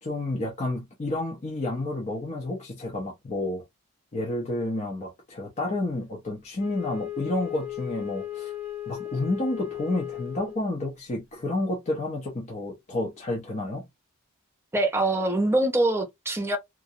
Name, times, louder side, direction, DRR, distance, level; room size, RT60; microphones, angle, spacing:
voice 1, 0.0-3.6 4.1-8.5 8.9-13.8, left 2 dB, 30° left, 0.6 m, -30 dB
Wind instrument woodwind instrument, 6.6-10.8, left 12 dB, 65° left, 0.9 m, -36 dB
voice 2, 14.7-16.6, right 1 dB, 10° right, 0.6 m, -24 dB
2.4 x 2.0 x 2.6 m
head